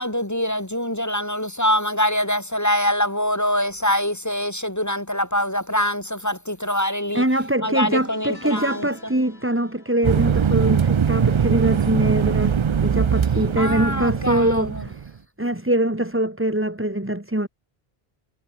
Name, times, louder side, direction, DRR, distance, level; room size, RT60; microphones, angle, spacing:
voice 1, 0.0-7.2 7.6-8.9 13.6-14.8, equal, 15° left, 1.6 m, -24 dB
voice 2, 7.1-12.5 12.8-15.0 15.4-17.5, right 1 dB, 10° right, 2.0 m, -23 dB
sound 1, 7.9-13.3 13.5-13.9 15.2-15.3, left 1 dB, 70° left, 8.2 m, -47 dB
sound 2, 10.0-15.1, right 7 dB, 45° right, 0.4 m, -21 dB
omnidirectional pair, 1.0 m